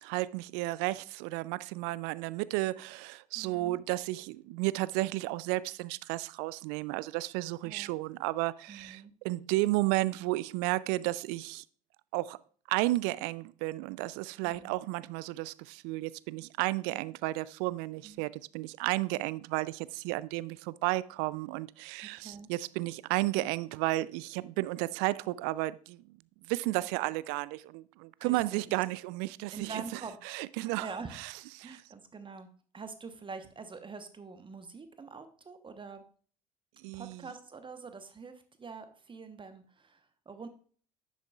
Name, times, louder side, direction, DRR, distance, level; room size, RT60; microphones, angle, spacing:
voice 1, 0.0-11.6 12.1-12.4 12.7-26.0 26.5-29.8 30.3-30.9 31.1-31.8 36.8-37.2, right 19 dB, 60° right, 0.4 m, -33 dB
voice 2, 3.3-3.8 7.6-7.9 8.7-9.1 14.4-14.8 18.0-18.2 22.0-22.5 28.2-28.7 29.5-30.3 30.6-31.2 31.6-32.5 32.7-36.0 36.9-40.5, right 4 dB, 25° right, 1.0 m, -45 dB
10.0 x 7.2 x 2.4 m
figure-of-eight pair, 60°, 20 cm